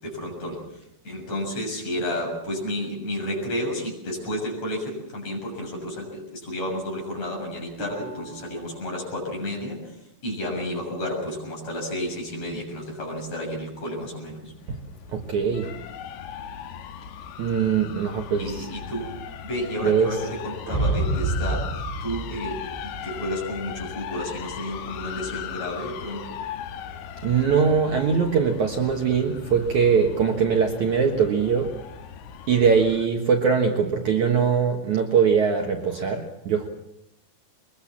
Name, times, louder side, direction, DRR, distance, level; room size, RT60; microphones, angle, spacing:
voice 1, 0.0-0.6 1.0-9.8 10.2-14.5 18.4-19.1 19.4-21.7 22.0-26.4, left 1 dB, 40° left, 0 dB, 8.1 m, -31 dB
Harp, 7.8-11.5 12.1-12.5 13.1-13.2, right 3 dB, 35° right, 8.8 m, -47 dB
sound 1, 14.3-33.1, left 8 dB, 85° left, 3.2 m, -38 dB
voice 2, 15.1-15.7 17.4-18.7 19.8-20.2 27.2-31.8 32.5-36.7, right 6 dB, 55° right, 3 dB, 2.4 m, -22 dB
sound 2, 20.7-23.2, right 2 dB, 80° right, 6.2 m, -27 dB
23.0 x 22.0 x 7.3 m, 0.82 s
omnidirectional pair, 4.7 m